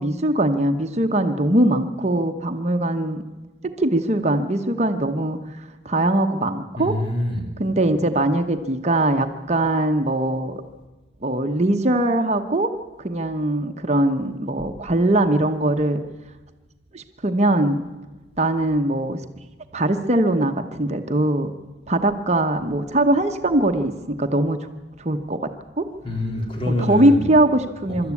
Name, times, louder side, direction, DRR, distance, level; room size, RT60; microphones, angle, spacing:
voice 1, 0.0-3.2 3.8-5.4 5.8-6.9 7.6-10.6 11.2-12.7 13.0-16.0 16.9-17.8 18.4-19.2 19.7-21.5 21.9-24.6 25.0-25.5 25.8-25.9 26.7-28.1, right 1 dB, 40° right, 6 dB, 1.0 m, -21 dB
voice 2, 6.7-7.7 26.0-27.2 27.9-28.1, equal, 30° left, 2 dB, 3.2 m, -26 dB
24.5 x 13.0 x 8.4 m, 1.2 s
head